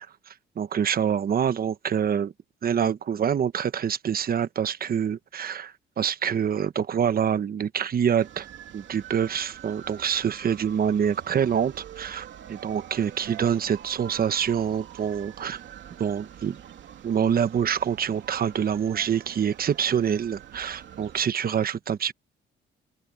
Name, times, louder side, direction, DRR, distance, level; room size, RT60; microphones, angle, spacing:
voice 1, 0.6-2.3 2.6-8.5 8.7-15.6 16.0-16.6 17.0-22.1, right 8 dB, 50° right, 1.1 m, -26 dB
sound 1, 8.2-21.2, right 10 dB, 70° right, 2.9 m, -45 dB
cardioid pair, 90°, 20 cm